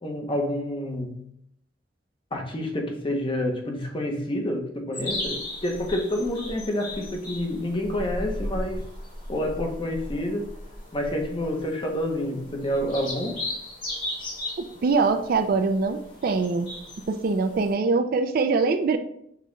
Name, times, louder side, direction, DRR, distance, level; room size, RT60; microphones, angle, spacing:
voice 1, 0.0-1.2 2.3-8.8 9.3-10.5 10.9-13.4, left 1 dB, 30° left, 2 dB, 0.8 m, -28 dB
sound 1, 4.9-17.7, left 1 dB, 50° left, 1.7 m, -36 dB
voice 2, 14.8-16.7 17.1-19.0, right 4 dB, 55° right, 8 dB, 0.4 m, -23 dB
5.9 x 2.3 x 3.1 m, 0.71 s
head